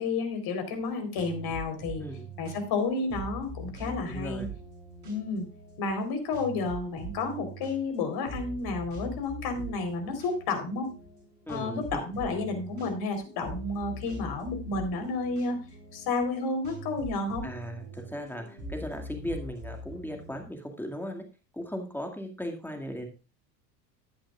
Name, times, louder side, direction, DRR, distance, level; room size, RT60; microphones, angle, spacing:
voice 1, 0.0-2.0 2.4-4.4 5.0-5.5 5.8-10.9 11.5-15.6 15.9-17.5, left 3 dB, 50° left, 6 dB, 4.0 m, -31 dB
sound 1, 0.8-20.4, right 1 dB, 80° right, 7.7 m, -43 dB
voice 2, 4.1-4.5 11.5-12.0 17.4-21.2 21.5-23.1, equal, 5° left, 2 dB, 2.2 m, -37 dB
14.5 x 10.0 x 2.5 m, 0.30 s
hypercardioid pair, 85°, 49 cm